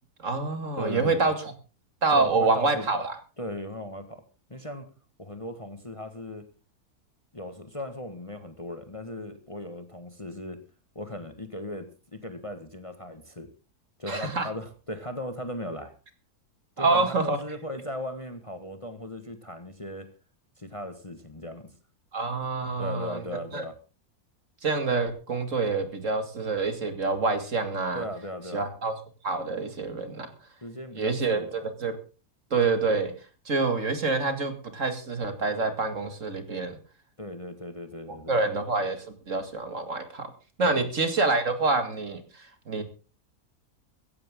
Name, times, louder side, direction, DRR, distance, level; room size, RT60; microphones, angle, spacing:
voice 1, 0.2-1.3 2.0-3.1 14.1-14.5 16.8-17.4 22.1-23.2 23.5-23.6 24.6-28.0 28.5-29.0 29.2-30.3 31.0-32.0 32.5-33.1 33.5-36.8 38.3-40.3 40.6-42.8, right 3 dB, 50° right, 8 dB, 2.4 m, -27 dB
voice 2, 0.8-1.3 2.1-2.9 3.4-4.2 4.5-4.9 5.2-6.5 7.3-10.6 10.9-13.5 14.0-15.9 16.8-20.1 20.6-21.7 22.8-23.7 27.9-28.7 30.6-31.6 37.2-38.4 40.6-40.9, left 1 dB, 20° left, 8 dB, 1.5 m, -37 dB
15.5 x 15.5 x 3.7 m, 0.34 s
omnidirectional pair, 1.6 m